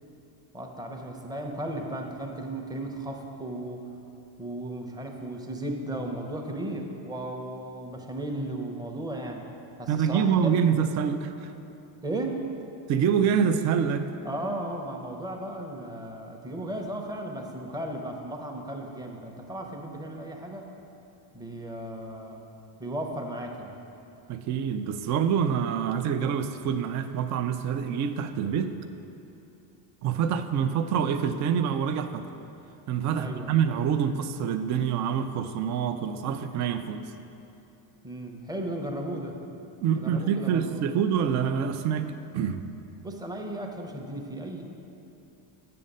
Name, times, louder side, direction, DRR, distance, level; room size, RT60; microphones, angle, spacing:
voice 1, 0.5-3.9 4.4-9.5 9.8-10.5 12.0-12.5 14.2-20.7 21.3-22.4 22.8-23.8 33.1-33.5 38.0-39.4 39.9-40.9 43.0-44.6, right 1 dB, 10° right, 2 dB, 0.7 m, -35 dB
voice 2, 9.9-11.5 12.9-14.1 24.3-28.7 30.0-32.3 32.9-37.0 39.8-42.1 42.3-42.6, right 7 dB, 40° right, 9 dB, 0.4 m, -26 dB
7.7 x 6.5 x 5.3 m, 2.9 s
cardioid pair, 120°, 47 cm